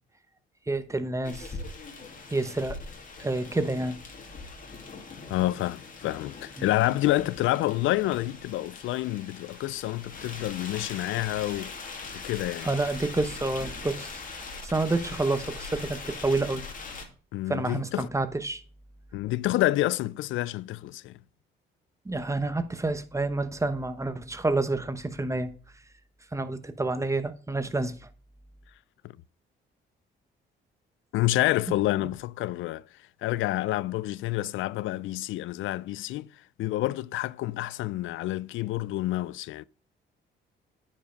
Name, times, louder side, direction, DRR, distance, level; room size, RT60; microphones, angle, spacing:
voice 1, 0.7-1.5 2.3-2.8 3.2-4.0 6.6-6.7 12.6-14.2 14.6-16.6 17.5-18.6 22.0-25.5 26.3-28.1 32.0-32.1, right 2 dB, 15° right, 1.0 m, -29 dB
sound 1, 1.2-17.1, left 4 dB, 45° left, 2.5 m, -41 dB
voice 2, 5.3-11.7 12.1-12.7 17.3-18.1 19.1-21.1 31.1-32.8 33.2-36.3 36.6-39.6, left 16 dB, 80° left, 0.4 m, -28 dB
9.7 x 5.4 x 5.1 m
cardioid pair, 90°, 20 cm